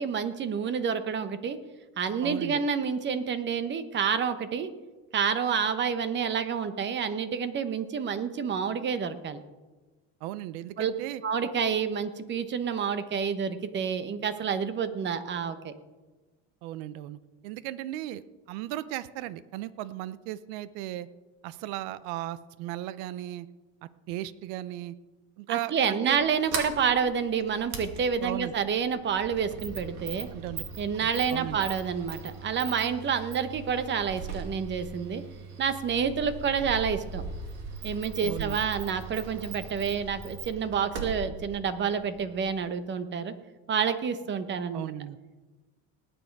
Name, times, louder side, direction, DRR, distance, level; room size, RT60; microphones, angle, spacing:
voice 1, 0.0-1.6 2.0-4.7 5.1-9.4 10.8-10.9 11.2-15.7 25.5-30.3 30.8-35.2 35.6-37.2 37.8-43.3 43.7-44.9, right 6 dB, 35° right, 11 dB, 1.1 m, -29 dB
voice 2, 2.2-2.6 10.2-11.2 16.6-21.1 21.4-23.5 24.1-24.9 25.4-26.2 28.2-28.5 30.3-30.6 31.0-31.6 38.2-38.6 44.7-45.2, right 14 dB, 75° right, 16 dB, 0.7 m, -36 dB
Sliding door, 26.2-42.6, right 4 dB, 50° right, 2.4 m, -40 dB
19.0 x 9.0 x 4.7 m, 1.2 s
supercardioid pair, 120°, 33 cm